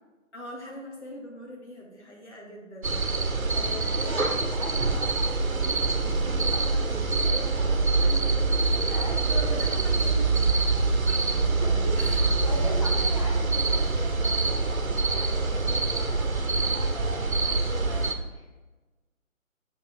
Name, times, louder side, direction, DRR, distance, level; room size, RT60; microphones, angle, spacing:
voice 1, 0.3-3.0 8.0-8.2 9.2-10.4 10.7-11.5 11.9-12.2, equal, 55° left, -3 dB, 2.7 m, -41 dB
sound 1, 2.8-18.1, right 3 dB, 80° right, 1.0 m, -25 dB
voice 2, 3.5-7.9 8.2-8.3 8.7-9.7 11.5-18.5, equal, 25° right, -2 dB, 0.6 m, -40 dB
sound 2, 3.7-16.2, right 1 dB, ahead, 1.2 m, -47 dB
6.7 x 5.7 x 4.4 m, 1.2 s
figure-of-eight pair, 150°, 41 cm